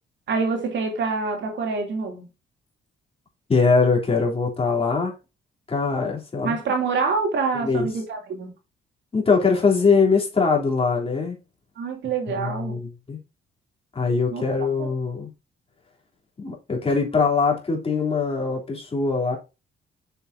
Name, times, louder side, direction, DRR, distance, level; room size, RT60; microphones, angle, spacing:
voice 1, 0.3-2.2 6.4-8.5 11.8-12.8 14.3-14.4 14.8-14.9, right 4 dB, 65° right, 2.8 m, -26 dB
voice 2, 3.5-5.1 5.7-6.5 7.6-7.9 9.1-11.4 12.4-13.2 13.9-15.3 16.4-19.4, left 4 dB, 30° left, 3.2 m, -22 dB
7.0 x 6.8 x 2.7 m
cardioid pair, 90°, 20 cm